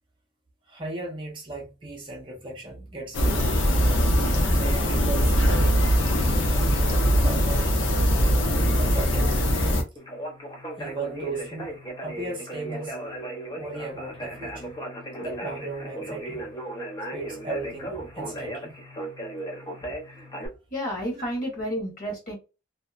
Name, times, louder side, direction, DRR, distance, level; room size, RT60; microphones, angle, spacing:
voice 1, 0.7-3.6 4.1-4.2 4.5-5.8 6.4-7.8 8.8-9.5 10.8-13.0 13.6-14.7 15.2-16.5 17.1-18.8 21.1-21.2, right 3 dB, 25° right, 0.6 m, -36 dB
sound 1, 3.1-9.8, equal, 80° left, 0.7 m, -21 dB
Conversation, 10.0-20.5, right 1 dB, 20° left, 0.6 m, -36 dB
voice 2, 20.7-22.3, equal, 45° left, 1.3 m, -30 dB
2.8 x 2.1 x 2.4 m
head